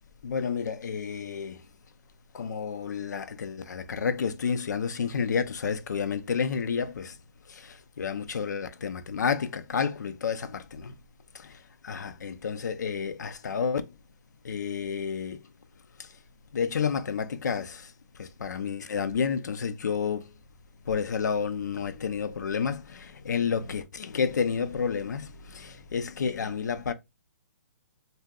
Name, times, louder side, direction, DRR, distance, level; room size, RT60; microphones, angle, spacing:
voice 1, 0.2-1.7 2.3-7.2 7.5-11.0 11.3-14.0 14.4-15.5 16.0-16.2 16.5-20.3 20.8-26.9, left 6 dB, 90° left, 0.5 m, -30 dB
2.7 x 2.1 x 3.6 m
hypercardioid pair, 170°, 9 cm